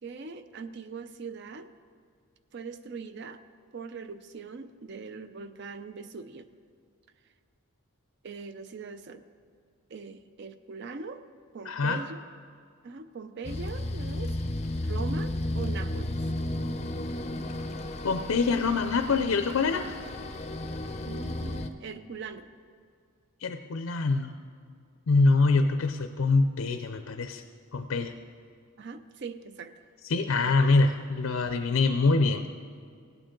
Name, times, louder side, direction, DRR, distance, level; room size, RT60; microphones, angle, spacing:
voice 1, 0.0-1.7 2.5-3.4 3.7-6.5 8.2-9.2 9.9-11.2 11.5-12.2 12.8-14.4 14.8-16.2 21.0-22.5 28.8-29.8 30.2-30.5, right 4 dB, 50° right, 11 dB, 0.5 m, -41 dB
voice 2, 11.7-12.0 18.0-20.0 23.4-24.4 25.1-27.4 27.7-28.1 30.1-32.5, left 3 dB, 75° left, 7 dB, 0.5 m, -24 dB
sound 1, 13.4-21.7, left 1 dB, 30° left, 0.5 m, -33 dB
17.0 x 8.9 x 3.8 m, 2.2 s
head